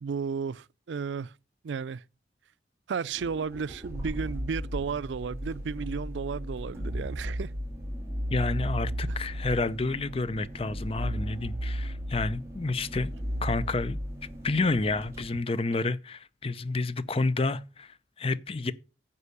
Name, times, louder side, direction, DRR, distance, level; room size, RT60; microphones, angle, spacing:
voice 1, 0.0-1.3 1.6-2.0 2.9-7.5, right 5 dB, 85° right, 0.4 m, -33 dB
sound 1, 3.2-15.3, equal, 15° right, 2.8 m, -35 dB
voice 2, 8.3-13.1 13.4-14.0 14.4-18.7, left 3 dB, 30° left, 0.6 m, -29 dB
9.7 x 5.5 x 6.8 m
head